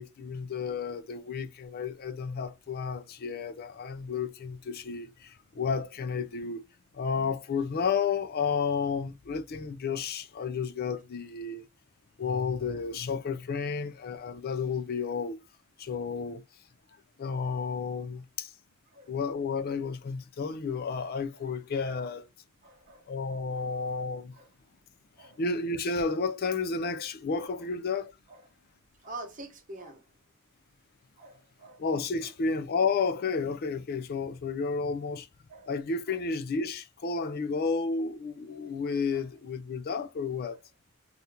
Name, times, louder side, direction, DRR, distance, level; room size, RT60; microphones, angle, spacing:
voice 1, 0.0-6.6 6.9-11.6 12.2-15.4 15.8-16.4 17.2-18.5 19.1-22.2 23.1-24.3 25.2-28.1 31.8-35.3 35.7-40.6, left 5 dB, 45° left, 0.4 m, -32 dB
voice 2, 22.6-23.0 23.5-23.6 24.4-24.5 25.2-25.4 29.0-30.0 31.2-31.8 35.5-35.7, right 2 dB, 40° right, 1.0 m, -45 dB
2.8 x 2.4 x 3.4 m
head